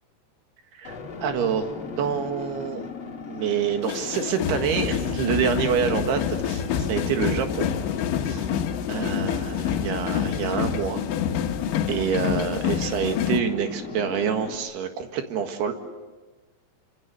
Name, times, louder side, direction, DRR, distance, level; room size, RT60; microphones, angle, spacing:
voice 1, 0.7-2.9 3.3-7.7 8.2-8.4 8.9-11.0 11.9-15.7, right 7 dB, 65° right, 6 dB, 3.5 m, -27 dB
sound 1, 0.8-14.6, left 5 dB, 35° left, 2.2 m, -38 dB
sound 2, 3.8-13.4, left 9 dB, 80° left, 3.6 m, -27 dB
27.0 x 26.5 x 6.9 m, 1.3 s
omnidirectional pair, 5.4 m